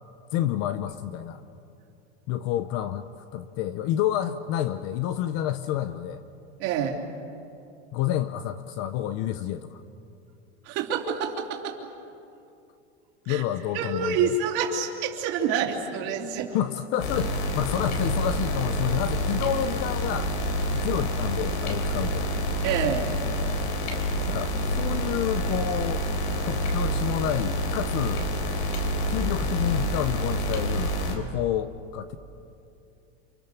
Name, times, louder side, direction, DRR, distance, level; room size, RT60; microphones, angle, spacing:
voice 1, 0.3-1.4 2.3-3.0 3.3-6.2 7.9-9.8 13.3-14.4 16.5-20.3 20.7-22.3 24.3-26.0 26.4-28.3 29.1-32.2, left 11 dB, 45° left, 11 dB, 0.8 m, -29 dB
voice 2, 6.6-7.0 10.6-11.8 13.3-13.4 13.7-16.6 22.6-23.1, right 7 dB, 45° right, 1 dB, 3.5 m, -27 dB
sound 1, 17.0-31.1, equal, 85° left, 4.1 m, -27 dB
29.5 x 26.5 x 7.0 m, 2.7 s
supercardioid pair, 165°, 33 cm